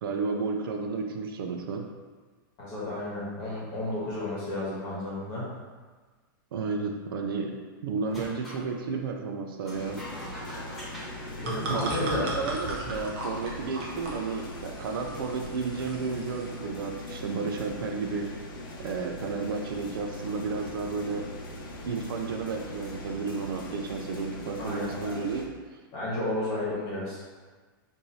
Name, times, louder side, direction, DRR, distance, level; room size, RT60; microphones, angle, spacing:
voice 1, 0.0-1.9 6.5-7.6 7.8-10.0 11.7-18.3 18.8-21.2 21.8-25.5, right 4 dB, 75° right, 3 dB, 0.5 m, -32 dB
voice 2, 2.6-5.5 11.3-12.3 24.6-24.9 25.9-27.2, left 2 dB, 30° left, -7 dB, 1.2 m, -32 dB
sound 1, 8.0-8.6 9.6-12.3, equal, ahead, 1.1 m, -43 dB
sound 2, 9.7-25.5, left 1 dB, 65° left, 0.7 m, -41 dB
sound 3, 11.1-16.5, right 1 dB, 35° right, 0.7 m, -37 dB
4.7 x 2.6 x 2.7 m, 1.4 s
supercardioid pair, 175°, 12 cm